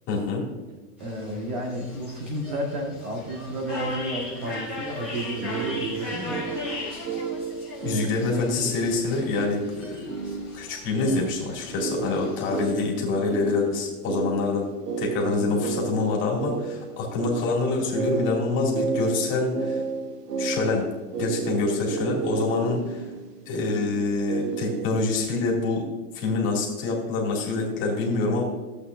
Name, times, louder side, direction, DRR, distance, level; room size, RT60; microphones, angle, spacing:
voice 1, 0.1-0.4 7.8-10.0 10.5-14.7 15.0-19.8 20.4-20.9 21.2-23.0 23.5-25.9 26.1-28.4, left 3 dB, 25° left, -2 dB, 2.2 m, -26 dB
sound 1, 1.0-12.7, left 2 dB, 10° right, 0.3 m, -38 dB
voice 2, 1.0-6.5 15.2-15.6, right 1 dB, 30° right, 2 dB, 1.2 m, -32 dB
sound 2, 5.2-24.9, right 5 dB, 90° right, 1.3 m, -32 dB
14.5 x 8.1 x 2.5 m, 1.3 s
supercardioid pair, 160°, 47 cm